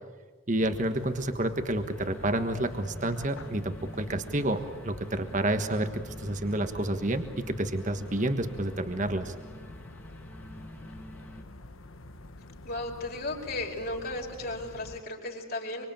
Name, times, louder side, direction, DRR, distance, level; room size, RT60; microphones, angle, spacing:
voice 1, 0.5-9.3, right 1 dB, 35° right, 8 dB, 1.4 m, -29 dB
sound 1, 0.6-15.0, left 2 dB, 80° left, 1.3 m, -47 dB
sound 2, 1.9-11.4, left 1 dB, 10° left, 1.6 m, -48 dB
voice 2, 12.6-15.9, left 2 dB, 45° left, 0 dB, 4.7 m, -35 dB
25.5 x 25.0 x 9.0 m, 1.4 s
head